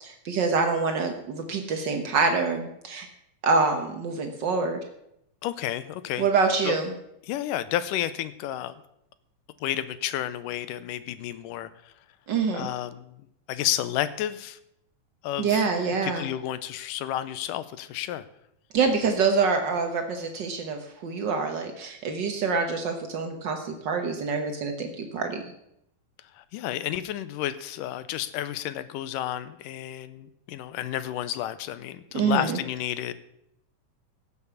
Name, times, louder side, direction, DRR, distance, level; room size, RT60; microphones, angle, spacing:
voice 1, 0.0-3.1 3.4-4.8 6.2-6.9 12.3-12.7 15.4-16.3 18.7-25.4 32.1-32.6, right 4 dB, 85° right, 5 dB, 0.9 m, -26 dB
voice 2, 5.4-6.3 6.6-6.8 7.2-8.8 9.6-11.9 12.5-13.1 13.5-14.6 15.2-15.6 16.0-18.3 26.3-33.1, left 12 dB, 80° left, 14 dB, 2.2 m, -31 dB
16.0 x 7.1 x 6.9 m, 0.78 s
omnidirectional pair, 3.8 m